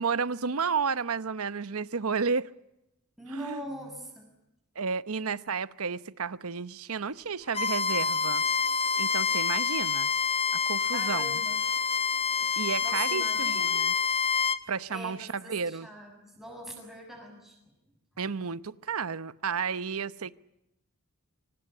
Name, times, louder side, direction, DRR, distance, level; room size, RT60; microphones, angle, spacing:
voice 1, 0.0-2.5 3.3-3.6 4.8-8.5 9.0-10.1 10.5-11.4 12.6-13.9 14.7-15.9 18.2-20.3, right 5 dB, 80° right, 16 dB, 0.9 m, -32 dB
voice 2, 3.2-4.3 7.1-7.2 10.9-11.6 12.4-12.5 12.8-13.9 14.6-17.6 18.2-18.3, equal, ahead, 2 dB, 7.1 m, -43 dB
Bowed string instrument, 7.5-14.6, left 6 dB, 30° left, 0.9 m, -27 dB
25.0 x 19.0 x 9.6 m, 0.88 s
head